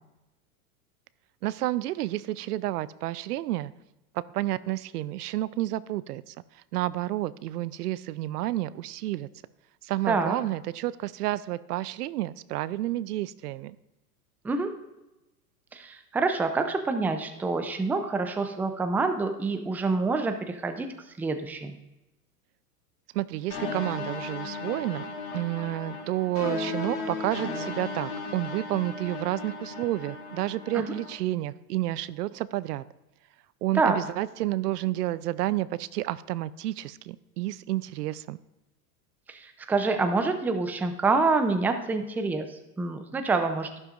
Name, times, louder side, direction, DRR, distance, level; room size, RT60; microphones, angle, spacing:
voice 1, 1.4-3.7 4.1-9.3 9.8-13.8 23.1-32.8 33.6-38.4, right 15 dB, 80° right, 17 dB, 0.6 m, -30 dB
voice 2, 15.7-20.9 21.2-21.8 30.7-30.9 33.7-34.0 39.3-43.8, right 3 dB, 5° right, 7 dB, 0.4 m, -27 dB
sound 1, 23.5-31.1, left 3 dB, 55° left, 2.7 m, -36 dB
11.5 x 10.5 x 2.5 m, 0.96 s
hypercardioid pair, 115°, 46 cm